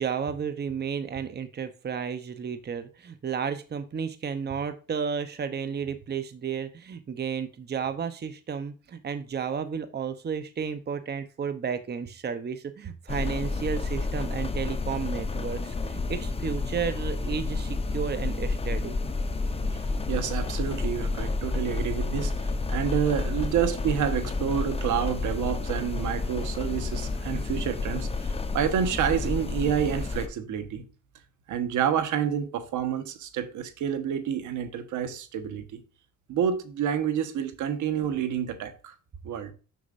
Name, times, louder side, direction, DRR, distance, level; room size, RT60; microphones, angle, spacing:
voice 1, 0.0-19.0, right 6 dB, 35° right, 0.8 m, -32 dB
sound 1, 13.1-30.3, left 3 dB, 20° left, 0.8 m, -30 dB
voice 2, 19.7-30.8 31.5-35.8 36.3-38.9 39.2-39.5, right 8 dB, 80° right, 1.3 m, -29 dB
6.7 x 6.5 x 2.5 m
cardioid pair, 90°, 30 cm